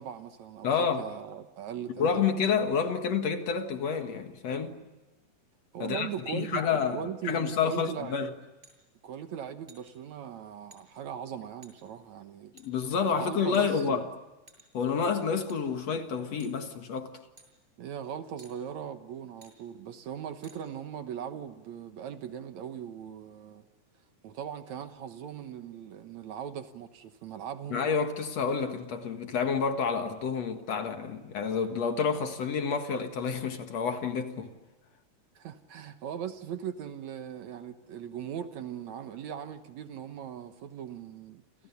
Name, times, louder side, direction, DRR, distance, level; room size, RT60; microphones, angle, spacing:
voice 1, 0.0-2.3 5.7-8.1 9.0-12.5 13.1-14.0 17.8-23.6 24.2-27.9 35.4-41.4, right 8 dB, 65° right, 2.3 m, -39 dB
voice 2, 0.6-1.0 2.0-4.8 5.8-7.0 7.2-8.3 12.5-14.1 14.7-17.2 27.7-34.5, left 6 dB, 55° left, 2.6 m, -29 dB
sound 1, 8.6-8.8 9.7-9.9 10.7-10.8 11.6-11.7 12.6-12.7 13.5-14.0 14.5-14.8 15.5-15.6 16.4-16.6 17.4-17.5 18.4-18.5 19.4-19.5 20.4-20.6, right 2 dB, 15° right, 6.7 m, -55 dB
29.5 x 28.5 x 7.0 m
omnidirectional pair, 3.8 m